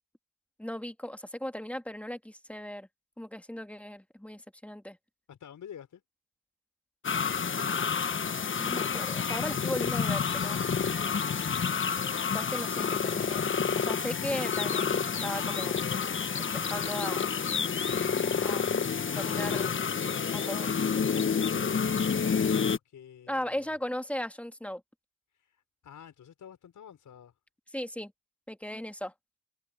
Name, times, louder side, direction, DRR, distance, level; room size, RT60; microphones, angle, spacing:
voice 1, 0.6-2.9 3.2-5.0 8.4-10.8 12.3-13.4 13.8-15.8 16.4-17.3 18.4-18.7 19.1-19.8 20.3-20.8 23.3-24.8 27.7-28.1 28.5-29.1, left 1 dB, 5° left, 2.4 m, -37 dB
voice 2, 5.3-6.0 22.1-23.7 25.3-27.3, left 9 dB, 55° left, 5.7 m, -49 dB
sound 1, 7.0-22.8, left 6 dB, 35° left, 1.4 m, -29 dB
sound 2, 7.9-22.4, left 22 dB, 85° left, 1.9 m, -51 dB
hypercardioid pair, 50°, 36 cm